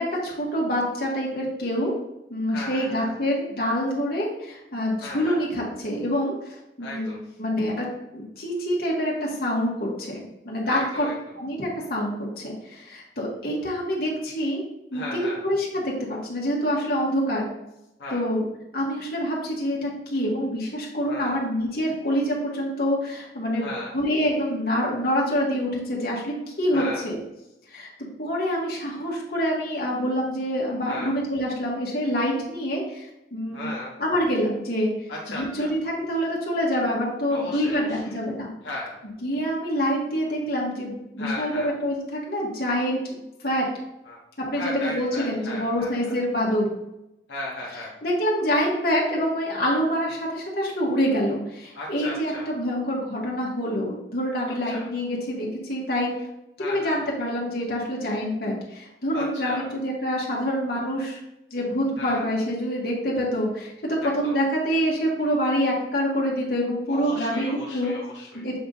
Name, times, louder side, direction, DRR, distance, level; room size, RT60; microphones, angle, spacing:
voice 1, 0.0-1.9 2.3-7.9 8.1-11.1 11.4-14.6 14.9-17.5 18.1-18.4 18.7-27.2 27.7-27.9 28.2-33.7 34.0-34.9 35.3-38.5 39.2-43.7 44.5-46.7 48.0-56.1 56.6-61.2 61.5-67.9 68.3-68.6, equal, 55° left, -3 dB, 1.9 m, -26 dB
voice 2, 2.5-3.1 5.0-5.5 6.8-7.3 10.6-11.2 14.9-15.4 18.0-18.3 21.1-21.4 23.6-24.0 26.7-27.0 30.9-31.1 33.5-33.9 35.1-35.7 37.3-38.2 38.6-39.0 41.2-41.7 44.0-44.2 44.5-46.2 47.3-47.9 51.7-52.5 54.7-54.9 56.6-57.1 59.1-59.7 62.0-62.2 64.0-64.4 66.9-68.4, left 2 dB, 80° left, -5 dB, 1.3 m, -36 dB
7.8 x 3.5 x 4.1 m, 0.89 s
head